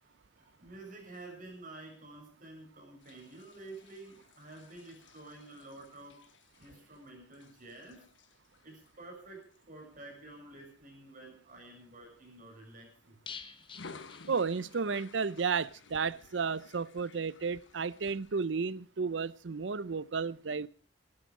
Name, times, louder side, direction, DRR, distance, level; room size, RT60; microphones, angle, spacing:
voice 1, 0.0-6.3 6.6-8.1 8.6-13.2, right 2 dB, 45° right, 6.6 m, -50 dB
sound 1, 3.0-10.8 11.3-11.6 11.9-13.1 13.6-18.5, left 4 dB, 90° left, 1.1 m, -56 dB
sound 2, 13.3-15.0 15.3-15.4 15.7-15.8, left 6 dB, 30° left, 1.1 m, -48 dB
voice 2, 14.3-20.7, right 5 dB, 80° right, 0.6 m, -33 dB
19.0 x 11.5 x 4.9 m
head